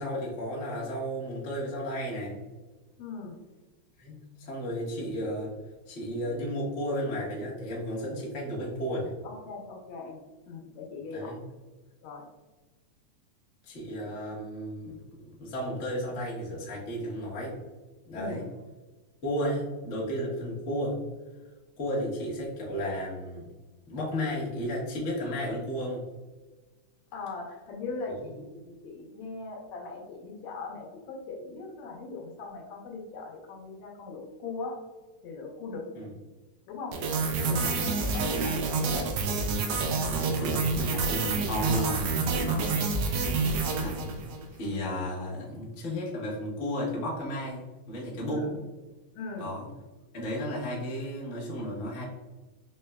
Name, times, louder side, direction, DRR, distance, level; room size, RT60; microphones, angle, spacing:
voice 1, 0.0-2.4 4.0-5.5 5.9-9.1 11.1-11.4 13.6-15.0 15.4-17.6 18.0-18.4 19.2-21.0 21.8-23.5 23.9-26.0 28.2-28.3 35.9-36.1 37.5-37.6 40.0-41.9 43.8-44.2 44.6-48.4 49.4-49.7 50.1-52.0, equal, 55° left, -5 dB, 0.8 m, -33 dB
voice 2, 3.0-3.4 9.2-11.4 12.0-12.3 18.1-18.5 27.1-34.8 35.2-35.8 36.7-37.0 37.4-39.1 41.7-42.8 43.1-43.5 48.3-48.6 49.2-49.5, left 4 dB, 75° left, 0 dB, 2.0 m, -40 dB
sound 1, 36.9-44.5, right 4 dB, 85° right, 1.3 m, -28 dB
5.2 x 3.2 x 2.2 m, 1.2 s
omnidirectional pair, 3.3 m